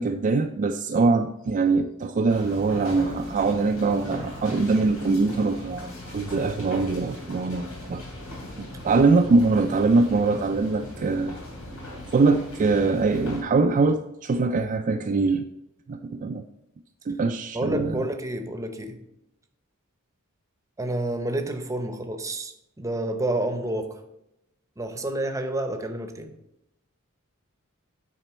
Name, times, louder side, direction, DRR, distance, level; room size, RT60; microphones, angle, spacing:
voice 1, 0.0-8.0 8.6-11.4 12.1-15.5 15.9-16.4 17.1-18.0, right 3 dB, 35° right, 5 dB, 0.3 m, -23 dB
sound 1, 2.3-13.4, left 1 dB, 90° left, 2.9 m, -39 dB
voice 2, 17.5-19.0 20.8-24.0 24.8-26.3, right 1 dB, 15° right, 7 dB, 0.7 m, -29 dB
9.0 x 4.2 x 4.2 m, 0.88 s
head